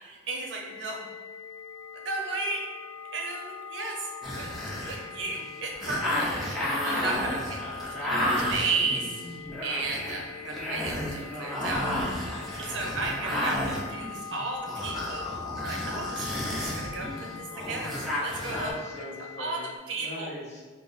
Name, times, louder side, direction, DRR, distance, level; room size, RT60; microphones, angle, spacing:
voice 1, 0.0-1.0 2.0-2.6 3.1-4.1 4.3-6.3 6.6-7.6 7.9-9.1 9.6-11.9 12.1-12.3 12.6-15.2 15.6-17.9 18.2-18.7 19.4-19.6 19.9-20.3, right 3 dB, 85° right, 1 dB, 0.6 m, -34 dB
sound 1, 0.6-19.8, left 6 dB, 85° left, 0.3 m, -42 dB
sound 2, 4.2-18.7, left 1 dB, ahead, 0.6 m, -32 dB
voice 2, 7.2-7.5 18.5-20.6, left 1 dB, 35° left, -4 dB, 0.7 m, -40 dB
3.0 x 2.1 x 3.9 m, 1.3 s
head